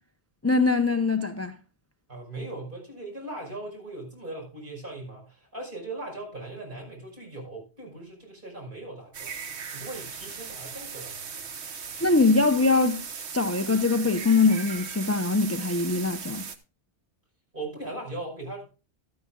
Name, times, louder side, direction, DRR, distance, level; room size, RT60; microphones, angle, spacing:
voice 1, 0.4-1.5 12.0-13.0 13.3-16.5, left 3 dB, 20° left, 0.5 m, -22 dB
voice 2, 2.1-11.5 17.5-18.7, right 2 dB, 50° right, 5.4 m, -39 dB
sound 1, 9.1-16.6, right 6 dB, 75° right, 1.3 m, -38 dB
13.5 x 12.5 x 2.3 m
omnidirectional pair, 1.1 m